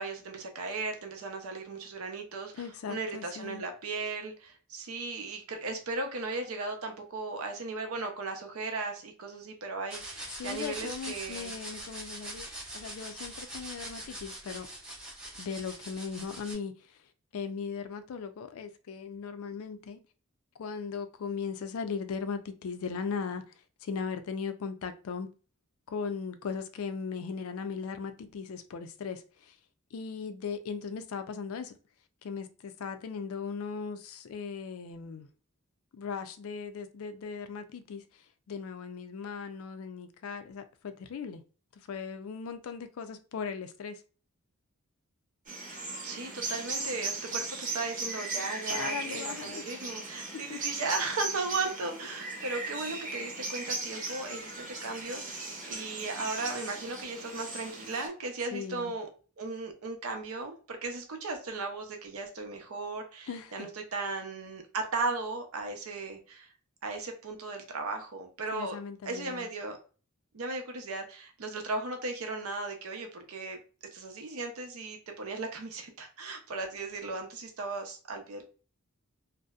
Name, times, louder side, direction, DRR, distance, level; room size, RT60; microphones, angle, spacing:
voice 1, 0.0-11.6 46.0-59.1 59.4-66.5 66.8-68.8 69.0-69.8 70.3-73.6 73.9-78.4, right 3 dB, 75° right, 0.6 m, -36 dB
voice 2, 2.5-3.6 10.4-12.5 12.7-14.7 15.4-17.0 17.3-20.0 20.6-23.4 23.8-25.3 25.9-29.6 29.9-31.7 32.2-35.3 35.9-41.4 41.9-44.0 48.7-49.8 50.3-50.6 58.5-58.9 63.3-63.7 68.5-69.5, left 5 dB, 75° left, 0.4 m, -38 dB
sound 1, 9.9-16.5, right 1 dB, 5° right, 0.6 m, -43 dB
sound 2, 45.5-58.1, right 3 dB, 35° right, 0.7 m, -38 dB
2.6 x 2.1 x 2.3 m
head